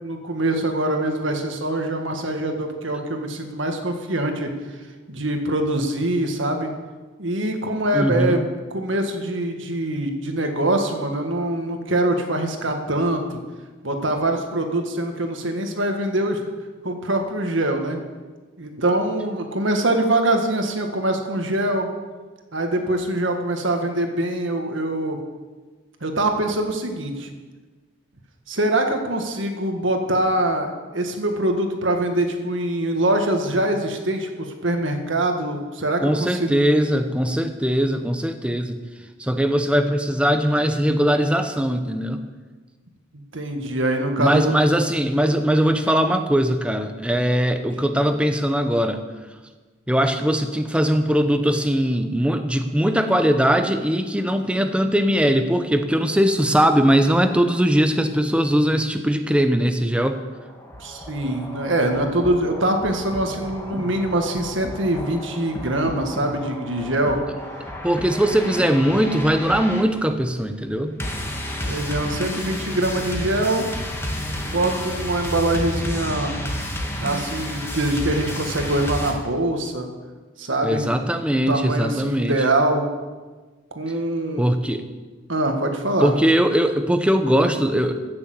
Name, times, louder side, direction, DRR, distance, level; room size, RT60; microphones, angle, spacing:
voice 1, 0.0-4.5 5.1-6.7 7.2-13.4 13.8-16.4 16.8-18.0 18.6-21.9 22.5-25.3 26.0-27.3 28.5-36.7 43.3-44.6 60.8-67.2 71.6-73.7 74.4-76.4 77.0-79.9 80.4-80.8 81.3-82.9 83.7-84.5 85.3-86.1, right 1 dB, 70° right, 4 dB, 1.8 m, -23 dB
voice 2, 7.9-8.4 36.0-38.8 39.2-42.2 44.2-49.0 49.9-60.2 67.8-71.0 80.6-82.4 84.4-84.8 86.0-87.9, equal, 5° right, 7 dB, 0.8 m, -20 dB
sound 1, 60.4-79.1, equal, 15° left, 1.7 m, -31 dB
15.0 x 7.0 x 7.8 m, 1.3 s
head